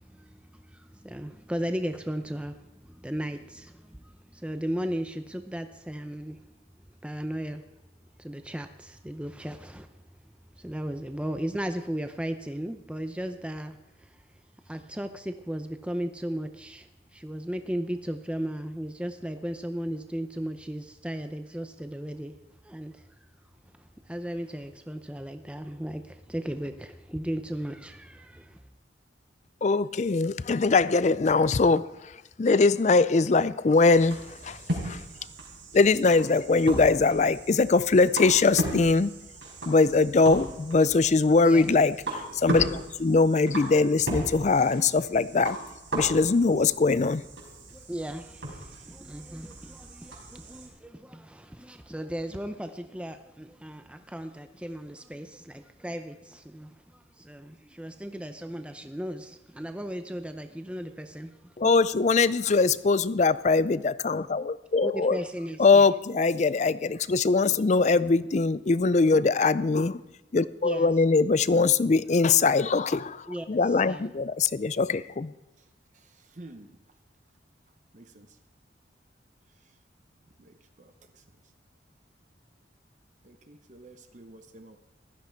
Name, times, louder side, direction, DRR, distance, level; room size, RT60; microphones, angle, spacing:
voice 1, 0.0-6.5 7.0-7.6 8.2-9.9 10.6-14.2 14.7-22.3 22.6-23.1 23.8-28.6 41.4-41.7 47.7-61.5 64.8-65.8 67.9-68.1 70.6-70.9 73.3-74.1, equal, 5° right, 0.6 m, -36 dB
voice 2, 29.6-31.9 32.4-35.0 35.7-39.1 39.7-45.6 45.9-47.2 61.6-65.2 65.6-70.0 70.3-75.3, left 4 dB, 40° left, 0.4 m, -22 dB
sound 1, 33.8-50.7, right 1 dB, 80° right, 4.9 m, -37 dB
voice 3, 75.9-76.8 77.9-78.3 80.4-81.2 83.2-84.8, right 2 dB, 40° right, 0.8 m, -50 dB
16.0 x 13.0 x 4.5 m
head